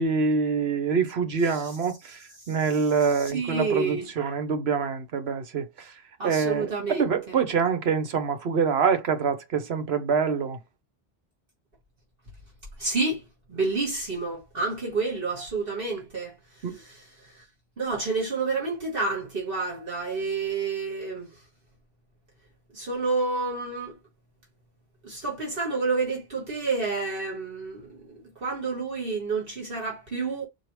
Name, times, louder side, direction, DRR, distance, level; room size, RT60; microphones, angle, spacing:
voice 1, 0.0-5.9 6.2-10.6 16.6-16.8, right 5 dB, 80° right, 1.2 m, -25 dB
voice 2, 3.1-4.1 6.2-7.1 12.8-13.2 13.5-16.3 16.7-17.0 17.8-21.3 22.7-24.0 25.0-30.5, right 4 dB, 65° right, 1.8 m, -29 dB
4.7 x 2.4 x 4.6 m
omnidirectional pair, 1.0 m